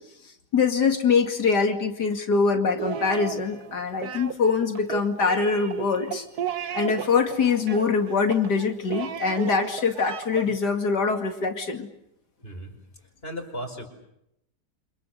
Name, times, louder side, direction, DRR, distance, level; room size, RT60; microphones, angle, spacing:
voice 1, 0.5-6.2 6.7-11.9, left 5 dB, 80° left, 5 dB, 2.9 m, -23 dB
sound 1, 2.8-10.6, right 9 dB, 70° right, 1.8 m, -34 dB
voice 2, 12.4-12.8 13.2-13.9, equal, 35° left, 5 dB, 5.2 m, -35 dB
28.5 x 27.0 x 6.7 m, 0.80 s
omnidirectional pair, 1.7 m